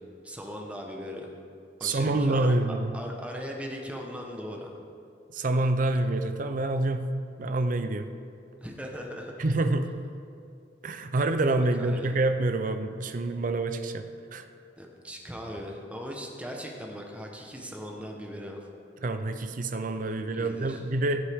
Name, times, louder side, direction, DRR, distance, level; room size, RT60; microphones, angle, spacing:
voice 1, 0.2-1.3 1.8-2.6 2.9-4.7 8.6-9.3 11.8-12.1 14.8-18.7 20.3-20.8, equal, 5° right, 0 dB, 1.1 m, -39 dB
voice 2, 1.8-2.9 5.3-7.1 7.4-8.1 9.4-9.9 10.8-14.4 19.0-21.2, right 2 dB, 45° right, 8 dB, 0.5 m, -27 dB
16.0 x 7.4 x 3.6 m, 2.4 s
head